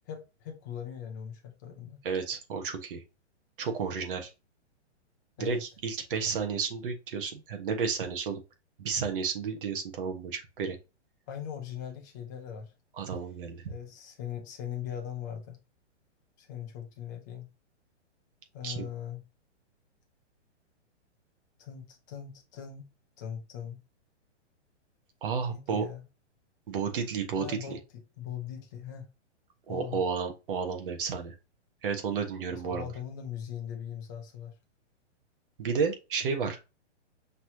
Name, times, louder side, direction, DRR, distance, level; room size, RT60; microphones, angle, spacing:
voice 1, 0.1-2.0 5.4-5.6 11.3-12.7 13.7-15.6 16.4-17.5 18.5-19.2 21.6-22.9 23.2-23.8 25.5-26.0 27.3-29.1 29.7-30.0 32.5-34.5, left 9 dB, 15° left, 0.6 m, -40 dB
voice 2, 2.0-3.0 3.6-4.3 5.4-8.4 8.8-10.8 13.0-13.6 18.6-18.8 25.2-25.8 26.7-27.8 29.7-31.3 31.8-32.9 35.6-36.6, right 5 dB, 45° right, 1.3 m, -32 dB
5.8 x 3.1 x 2.7 m
hypercardioid pair, 165°, 36 cm